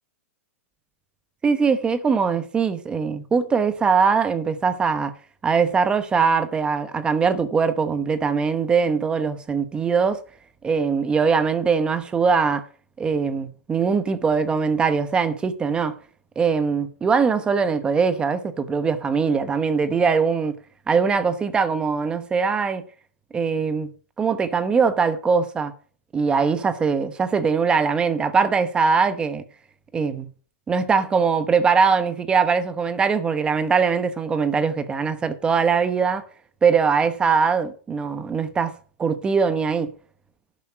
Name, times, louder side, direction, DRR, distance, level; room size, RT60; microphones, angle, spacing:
voice 1, 1.4-5.1 5.4-10.2 10.6-12.6 13.0-16.0 16.4-20.5 20.9-22.8 23.3-23.9 24.2-25.7 26.1-29.4 29.9-30.3 30.7-36.2 36.6-39.9, right 5 dB, 10° right, 0.9 m, -21 dB
11.0 x 7.3 x 5.7 m
hypercardioid pair, 155°, 8 cm